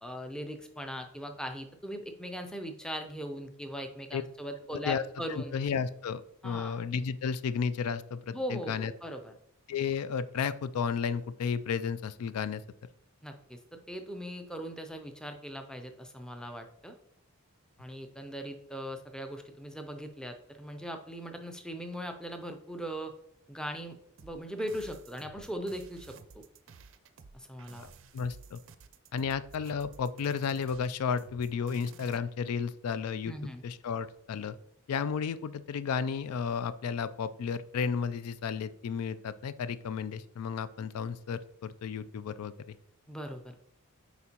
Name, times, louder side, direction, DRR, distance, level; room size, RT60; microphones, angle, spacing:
voice 1, 0.0-5.5 6.4-6.8 8.3-9.3 13.2-16.9 17.8-23.1 23.5-26.4 27.3-27.9 33.3-33.6 43.1-43.5, equal, 5° left, 5 dB, 0.5 m, -40 dB
voice 2, 4.7-5.0 5.3-8.9 9.7-12.6 28.1-28.6 29.1-33.3 33.6-34.6 34.9-42.5, left 6 dB, 80° left, 15 dB, 0.3 m, -33 dB
sound 1, 24.2-32.2, right 5 dB, 60° right, 0.5 m, -53 dB
8.0 x 4.9 x 2.9 m, 0.73 s
head